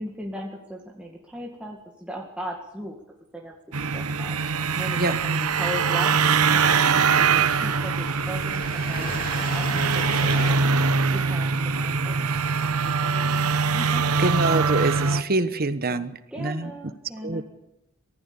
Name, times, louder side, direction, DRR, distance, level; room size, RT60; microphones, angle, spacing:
voice 1, 0.0-3.0 3.3-3.6 3.9-4.4 4.8-10.6 11.0-14.2 15.5-17.4, equal, 5° right, -2 dB, 2.1 m, -38 dB
sound 1, 3.7-15.2, right 5 dB, 85° right, 1.1 m, -23 dB
sound 2, 5.1-6.0 6.9-7.0 7.3-10.5, left 2 dB, 40° left, 3.1 m, -36 dB
voice 2, 14.2-16.1 16.4-16.7 17.2-17.4, right 2 dB, 45° right, 12 dB, 1.2 m, -25 dB
24.0 x 15.5 x 7.0 m, 0.86 s
head